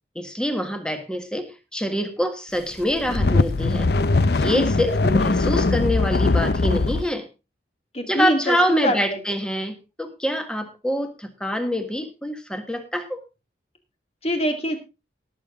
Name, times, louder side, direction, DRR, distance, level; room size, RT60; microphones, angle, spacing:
voice 1, 0.1-3.9 4.3-7.3 8.0-13.2, equal, 5° left, 7 dB, 1.5 m, -26 dB
sound 1, 2.8-7.1, left 3 dB, 60° left, 0.6 m, -21 dB
voice 2, 7.9-9.2 14.2-14.8, equal, 35° left, 6 dB, 2.2 m, -23 dB
18.5 x 7.3 x 3.7 m, 0.29 s
head